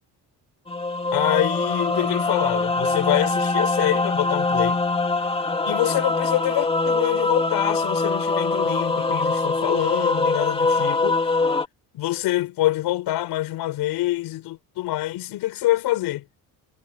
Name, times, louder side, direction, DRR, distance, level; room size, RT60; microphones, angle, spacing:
sound 1, 0.7-11.7, left 3 dB, 15° left, 2.0 m, -23 dB
voice 1, 1.1-4.8 5.7-11.2 11.9-16.2, left 15 dB, 80° left, 4.5 m, -25 dB
cardioid pair, 175°, 38 cm